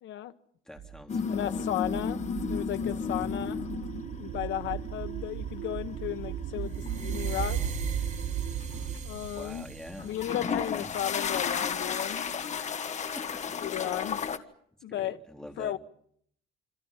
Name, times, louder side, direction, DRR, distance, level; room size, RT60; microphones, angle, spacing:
voice 1, 0.0-0.3 1.3-3.6 4.2-7.6 9.0-9.6 10.0-12.3 13.6-14.2 14.8-15.2 15.6-15.8, left 12 dB, 70° left, 1.2 m, -34 dB
voice 2, 0.6-1.6 9.3-10.9 13.0-13.5 14.9-15.7, equal, 5° left, 3.4 m, -45 dB
sound 1, 0.8-9.0, right 10 dB, 75° right, 3.1 m, -37 dB
sound 2, 1.1-4.2 4.7-5.0 6.5-8.2 8.6-9.0 10.0-14.4, left 6 dB, 35° left, 1.9 m, -33 dB
sound 3, 6.7-11.7, right 4 dB, 40° right, 5.4 m, -39 dB
28.0 x 26.5 x 5.6 m
cardioid pair, 150°, 20 cm